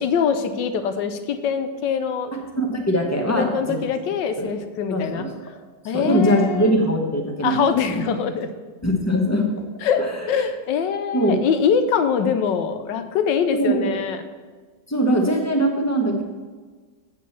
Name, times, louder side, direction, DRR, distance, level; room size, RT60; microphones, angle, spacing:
voice 1, 0.0-2.3 3.3-5.2 5.8-6.7 7.4-8.5 9.8-14.2, left 7 dB, 85° left, 9 dB, 1.4 m, -23 dB
voice 2, 2.6-3.8 4.4-4.5 4.9-5.3 5.9-7.6 7.9-8.0 8.8-9.5 10.0-10.1 11.1-11.4 13.5-13.9 14.9-16.2, equal, 10° left, 1 dB, 0.9 m, -21 dB
8.0 x 5.2 x 7.1 m, 1.4 s
omnidirectional pair, 1.9 m